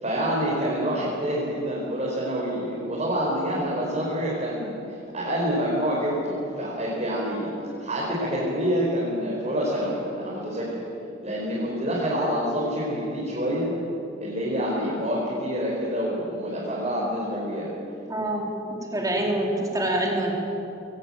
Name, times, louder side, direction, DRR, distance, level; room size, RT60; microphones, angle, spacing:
voice 1, 0.0-7.5 7.8-10.8 11.2-13.7 14.2-17.7, equal, 35° right, -6 dB, 5.3 m, -27 dB
voice 2, 18.1-20.3, right 1 dB, 20° right, -1 dB, 4.0 m, -26 dB
22.0 x 18.0 x 9.1 m, 2.7 s
head